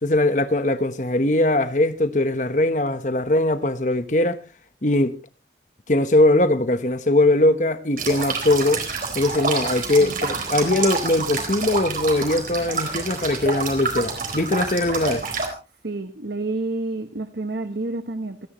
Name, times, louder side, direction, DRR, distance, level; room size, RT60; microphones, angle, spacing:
voice 1, 0.0-4.4 4.8-5.2 5.9-8.8 9.1-15.3, left 1 dB, 45° left, 1.1 m, -21 dB
sound 1, 8.0-15.5, right 4 dB, 50° right, 4.2 m, -28 dB
voice 2, 15.8-18.5, right 2 dB, 70° right, 1.0 m, -29 dB
27.5 x 10.5 x 3.1 m
head